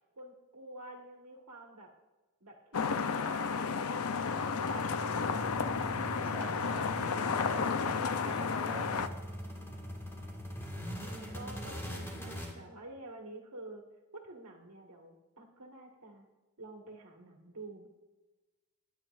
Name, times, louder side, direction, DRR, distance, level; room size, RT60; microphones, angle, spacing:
voice 1, 0.1-1.9 2.4-3.7 4.0-5.3 5.6-6.3 11.0-13.8 14.1-16.3 16.6-17.9, right 2 dB, 85° right, 1 dB, 1.7 m, -49 dB
sound 1, 2.7-9.1, left 5 dB, 75° left, 0.6 m, -32 dB
sound 2, 3.8-12.5, equal, 10° left, 1.7 m, -42 dB
voice 2, 6.3-9.1, equal, 5° right, -2 dB, 2.4 m, -46 dB
21.0 x 9.0 x 2.5 m, 1.2 s
head